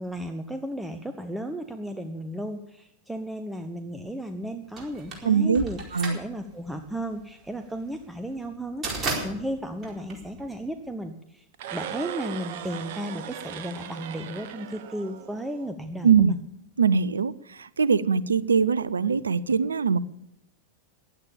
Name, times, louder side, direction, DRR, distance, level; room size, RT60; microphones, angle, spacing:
voice 1, 0.0-11.5 11.7-16.4, equal, 5° right, 0.9 m, -34 dB
sound 1, 4.8-10.9, right 3 dB, 25° right, 4.4 m, -35 dB
voice 2, 5.2-5.6 5.9-6.2 16.0-16.3 16.8-17.3 17.8-20.0, right 6 dB, 75° right, 0.5 m, -21 dB
sound 2, 11.5-15.7, right 9 dB, 50° right, 1.0 m, -38 dB
15.5 x 11.0 x 7.2 m
figure-of-eight pair, 90°, 0 cm